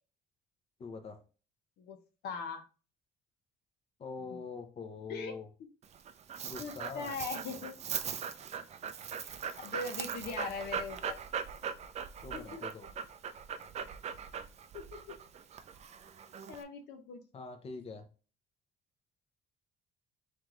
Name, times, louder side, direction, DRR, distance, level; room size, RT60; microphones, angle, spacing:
voice 1, 0.8-1.2 4.0-5.5 6.4-7.1 12.2-12.9 17.3-18.0, left 4 dB, 35° left, 6 dB, 0.7 m, -44 dB
voice 2, 2.2-2.6 4.3-4.4 5.1-5.3 6.6-7.7 9.2-11.2 12.3-12.6 14.7-15.0 16.5-17.2, left 4 dB, 75° left, 6 dB, 0.8 m, -41 dB
Dog, 5.8-16.6, right 7 dB, 40° right, 0.4 m, -40 dB
3.4 x 3.2 x 3.7 m, 0.35 s
cardioid pair, 110°, 17 cm